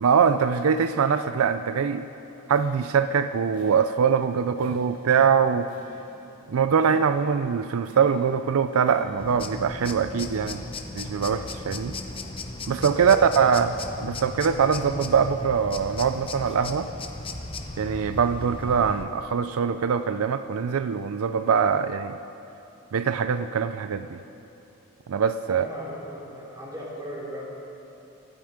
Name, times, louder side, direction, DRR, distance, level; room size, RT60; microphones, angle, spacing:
voice 1, 0.0-2.1 2.5-5.7 6.5-10.6 11.0-11.9 12.7-13.7 14.0-16.9 17.8-22.2 22.9-24.2 25.1-25.7, right 6 dB, 75° right, 11 dB, 0.4 m, -23 dB
sound 1, 2.4-9.6, right 1 dB, 35° right, 2.4 m, -52 dB
sound 2, 9.2-19.0, left 2 dB, 25° left, 0.8 m, -36 dB
voice 2, 13.0-13.7 14.7-14.9 25.5-27.4, equal, 15° right, -5 dB, 3.3 m, -37 dB
24.5 x 9.0 x 5.1 m, 2.9 s
head